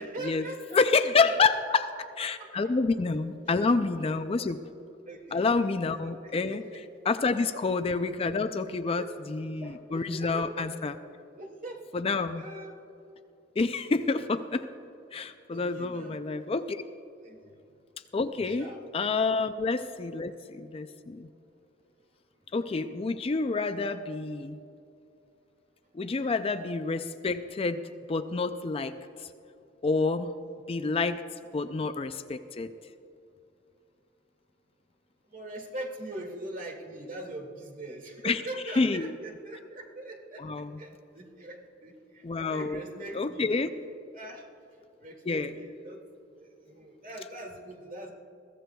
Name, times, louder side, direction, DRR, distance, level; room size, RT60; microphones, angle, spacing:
voice 1, 0.0-0.8 2.2-2.7 4.4-4.5 5.1-5.4 6.2-6.6 7.5-7.6 9.0-9.1 9.6-10.7 11.3-11.9 12.3-12.7 13.7-13.8 15.5-16.2 17.2-17.7 18.4-18.8 35.3-43.5 44.1-44.4 45.0-46.0 46.4-48.1, right 1 dB, 45° right, 0 dB, 2.1 m, -42 dB
voice 2, 0.7-1.9 2.2-4.6 5.3-6.6 7.1-10.9 11.9-12.4 13.6-14.7 15.1-16.8 18.1-21.3 22.5-24.6 25.9-27.8 28.1-29.3 29.8-30.3 30.7-31.2 31.5-32.7 38.2-38.4 38.7-39.2 40.4-40.8 42.2-42.8 43.1-43.7 45.3-45.5, left 4 dB, 30° left, 10 dB, 0.4 m, -28 dB
22.0 x 15.5 x 2.3 m, 2.7 s
head